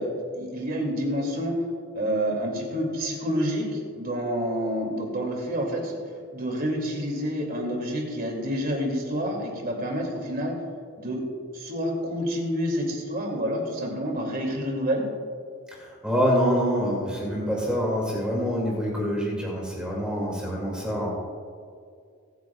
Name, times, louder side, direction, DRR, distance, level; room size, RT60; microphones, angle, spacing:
voice 1, 0.0-1.6 1.9-6.0 6.3-10.5 11.0-11.2 11.5-15.1, equal, 40° right, 0 dB, 2.4 m, -28 dB
voice 2, 15.8-21.1, equal, 5° right, -4 dB, 2.2 m, -26 dB
23.5 x 9.5 x 2.3 m, 2.2 s
head